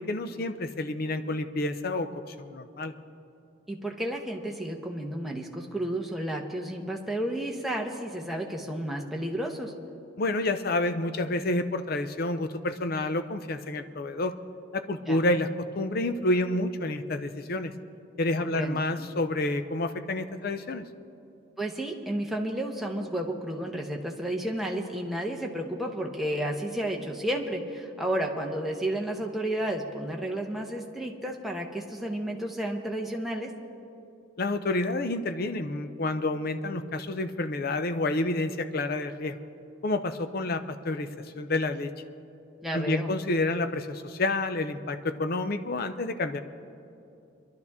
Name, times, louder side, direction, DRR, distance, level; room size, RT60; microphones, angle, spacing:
voice 1, 0.0-2.9 10.2-14.3 14.7-17.7 18.2-20.8 34.4-39.4 39.8-41.1 41.4-41.9 42.7-46.4, left 2 dB, 50° left, 10 dB, 0.6 m, -29 dB
voice 2, 3.7-9.7 15.1-15.2 18.4-18.8 21.6-33.5 42.6-43.1, right 1 dB, ahead, 0 dB, 1.0 m, -32 dB
25.5 x 11.5 x 3.6 m, 2.7 s
head